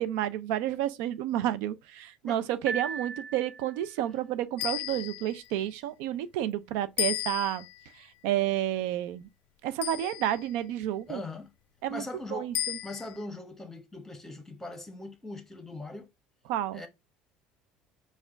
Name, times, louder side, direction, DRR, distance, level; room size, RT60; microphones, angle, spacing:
voice 1, 0.0-7.7 8.0-9.3 9.6-11.2 11.8-12.0 12.3-12.8 16.5-16.8, right 12 dB, 80° right, 0.4 m, -30 dB
Piano, 2.7-4.0, right 5 dB, 10° right, 0.4 m, -37 dB
sound 1, 4.6-5.5 7.0-7.8 9.8-10.5 12.5-13.2, left 15 dB, 65° left, 0.4 m, -34 dB
voice 2, 11.1-11.5 11.9-12.5 12.8-16.1 16.7-16.9, left 2 dB, 10° left, 1.1 m, -40 dB
4.3 x 2.4 x 4.5 m
supercardioid pair, 100°, 3 cm